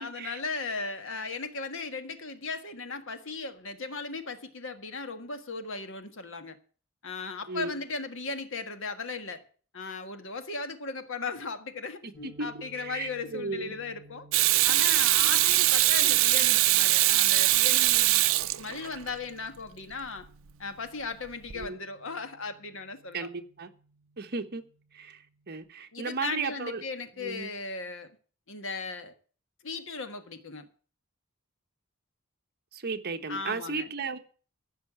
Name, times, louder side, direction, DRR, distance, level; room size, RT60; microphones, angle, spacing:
voice 1, 0.0-6.6 7.0-9.4 9.7-14.3 14.6-18.3 18.6-20.3 20.6-23.3 25.9-28.1 28.5-29.1 29.6-30.6 33.3-33.9, left 4 dB, 65° left, 1.6 m, -37 dB
sound 1, 12.1-25.6, right 2 dB, 10° left, 3.8 m, -56 dB
voice 2, 12.8-13.7 21.5-21.8 23.1-23.7 24.2-24.6 24.9-25.2 25.5-26.8 27.2-27.5 32.7-34.2, right 4 dB, 50° right, 1.2 m, -35 dB
Water tap faucet / Sink (filling or washing), 14.3-19.1 21.5-21.6, right 16 dB, 70° right, 0.6 m, -22 dB
15.0 x 5.8 x 8.8 m
head